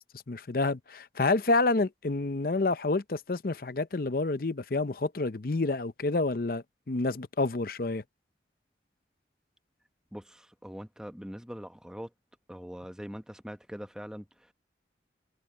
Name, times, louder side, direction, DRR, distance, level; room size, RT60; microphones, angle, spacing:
voice 1, 0.3-8.0, left 3 dB, 50° left, 0.7 m, -28 dB
voice 2, 10.1-12.1 12.5-14.5, equal, 5° right, 0.9 m, -42 dB
head